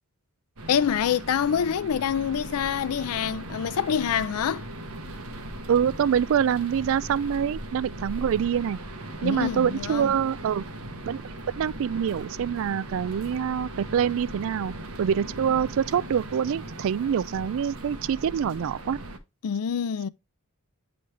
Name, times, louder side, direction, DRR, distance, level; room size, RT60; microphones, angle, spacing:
sound 1, 0.6-19.2, right 1 dB, 85° right, 1.0 m, -39 dB
voice 1, 0.7-4.6 9.2-10.1 19.4-20.1, left 8 dB, 85° left, 0.4 m, -26 dB
voice 2, 5.7-8.8 9.2-10.6 11.1-11.2 11.6-19.0, right 8 dB, 65° right, 0.3 m, -25 dB
9.7 x 3.9 x 3.2 m
head